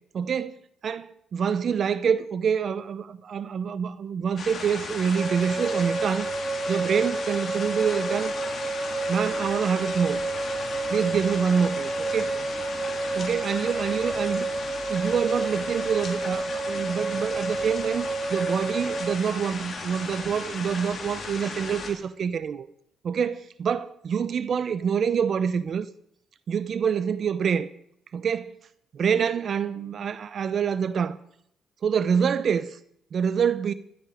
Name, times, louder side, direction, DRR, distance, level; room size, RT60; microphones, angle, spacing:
voice 1, 0.1-6.3 6.7-8.3 9.1-10.2 10.9-12.3 13.1-14.5 14.9-22.7 23.0-25.9 26.5-27.7 28.1-28.5 28.9-31.2 31.8-32.8 33.1-33.7, right 7 dB, 55° right, 0.7 m, -26 dB
sound 1, 4.4-21.9, left 4 dB, 45° left, 3.4 m, -36 dB
sound 2, 5.2-19.2, right 3 dB, 20° right, 1.3 m, -30 dB
15.0 x 12.0 x 5.1 m
cardioid pair, 90°, 0 cm